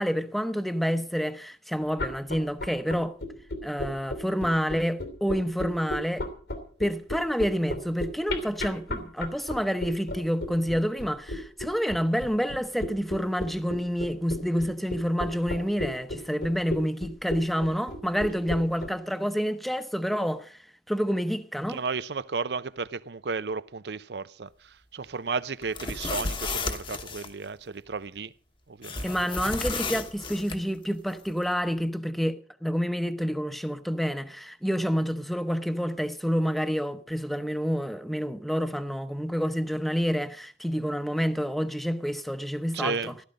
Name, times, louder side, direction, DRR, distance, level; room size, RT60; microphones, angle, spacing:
voice 1, 0.0-3.2 3.6-6.3 6.8-20.6 20.9-21.8 29.0-43.1, equal, ahead, 0.8 m, -28 dB
sound 1, 1.9-18.9, left 1 dB, 80° left, 2.9 m, -33 dB
voice 2, 21.7-28.3 28.7-29.3 42.7-43.1, right 4 dB, 70° right, 0.6 m, -33 dB
sound 2, 25.6-27.3 28.8-30.6, left 3 dB, 30° left, 1.1 m, -33 dB
15.5 x 13.5 x 5.3 m
head